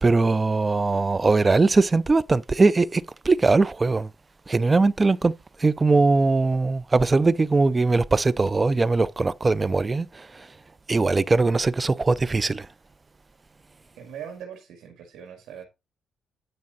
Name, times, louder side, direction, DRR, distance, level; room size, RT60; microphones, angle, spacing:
voice 1, 0.0-4.1 4.5-5.3 5.6-10.3 10.9-12.7, right 3 dB, 25° right, 0.5 m, -21 dB
voice 2, 14.0-15.7, right 8 dB, 85° right, 2.1 m, -40 dB
9.7 x 5.1 x 4.0 m
cardioid pair, 90°, 0 cm